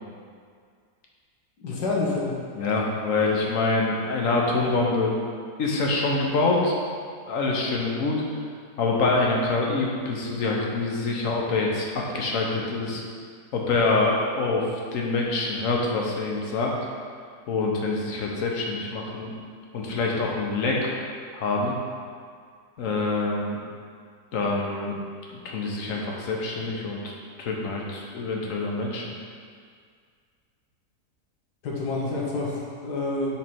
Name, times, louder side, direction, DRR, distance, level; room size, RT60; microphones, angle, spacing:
voice 1, 1.6-2.4 31.6-33.4, left 2 dB, 85° left, -4 dB, 1.5 m, -28 dB
voice 2, 2.6-5.3 5.6-6.7 7.3-8.2 8.8-13.0 13.5-16.7 17.5-19.3 19.7-20.9 21.3-21.7 22.8-23.6 24.3-25.0 25.3-29.0, left 3 dB, 55° left, -2 dB, 1.2 m, -25 dB
7.2 x 3.3 x 4.4 m, 2.1 s
omnidirectional pair, 1.8 m